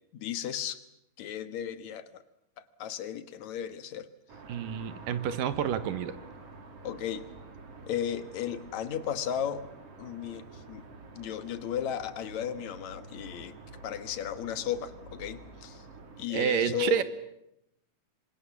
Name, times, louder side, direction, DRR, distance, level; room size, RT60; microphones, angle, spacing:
voice 1, 0.1-0.8 1.2-2.2 2.8-4.1 6.8-7.3 7.9-9.7 10.0-10.8 11.1-13.5 13.8-15.8 16.2-17.0, left 9 dB, 65° left, 12 dB, 2.5 m, -35 dB
sound 1, 4.3-16.3, right 3 dB, 50° right, 3.6 m, -48 dB
voice 2, 4.5-6.2 16.3-17.0, right 8 dB, 85° right, 12 dB, 3.0 m, -29 dB
27.0 x 25.0 x 7.2 m, 0.81 s
omnidirectional pair, 3.8 m